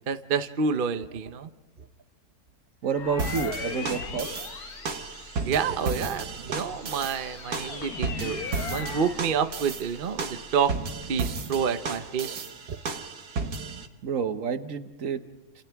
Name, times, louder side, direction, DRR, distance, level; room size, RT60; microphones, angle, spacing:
voice 1, 0.1-1.5 5.4-8.4 8.7-10.7 11.1-12.8, right 6 dB, 40° right, 9 dB, 0.9 m, -28 dB
voice 2, 2.8-4.3 8.5-8.6 14.0-15.2, right 6 dB, 60° right, 10 dB, 1.3 m, -29 dB
sound 1, 2.9-5.8 6.4-9.2, left 5 dB, 70° left, 1.8 m, -38 dB
sound 2, 2.9-11.3, right 1 dB, 15° left, 6.9 m, -51 dB
sound 3, 3.2-13.9, right 4 dB, 75° right, 2.0 m, -34 dB
29.5 x 28.0 x 3.5 m, 1.1 s
omnidirectional pair, 1.6 m